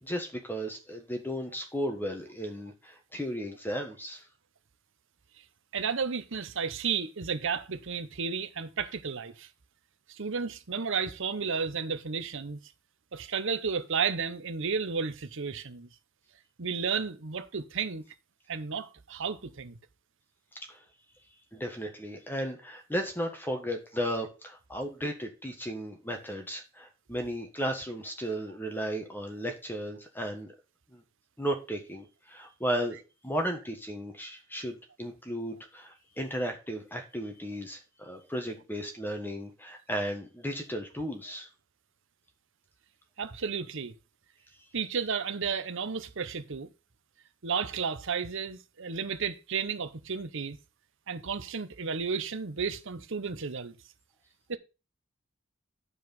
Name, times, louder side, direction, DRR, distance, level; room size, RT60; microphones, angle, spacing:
voice 1, 0.0-4.2 20.7-20.8 21.5-30.5 30.9-31.0 31.4-33.0 33.2-41.5, equal, 10° left, 1.5 m, -35 dB
voice 2, 5.7-9.5 10.2-12.6 13.1-15.9 16.6-18.0 18.5-19.8 43.2-44.0 44.7-46.7 47.4-50.6 51.1-53.7 54.5-54.6, right 5 dB, 65° right, 0.9 m, -32 dB
8.2 x 4.8 x 5.3 m
head